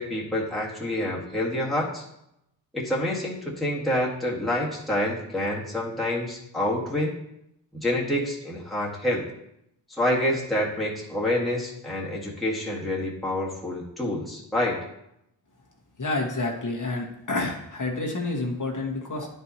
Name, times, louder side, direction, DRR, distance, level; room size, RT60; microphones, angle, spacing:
voice 1, 0.0-2.0 2.7-7.1 7.7-9.3 9.9-14.8, left 1 dB, ahead, -5 dB, 1.8 m, -27 dB
voice 2, 16.0-19.3, left 2 dB, 40° left, -1 dB, 1.5 m, -29 dB
9.9 x 4.5 x 2.9 m, 0.80 s
cardioid pair, 55°, 45 cm